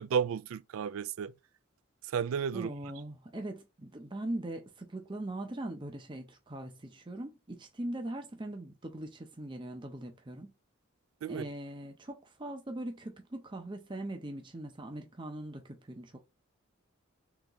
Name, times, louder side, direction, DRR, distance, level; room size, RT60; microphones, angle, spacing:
voice 1, 0.0-1.3 2.1-2.7 11.2-11.5, right 7 dB, 80° right, 0.3 m, -32 dB
voice 2, 2.5-10.5 11.3-16.2, right 1 dB, 20° right, 0.6 m, -41 dB
3.9 x 3.4 x 2.9 m
head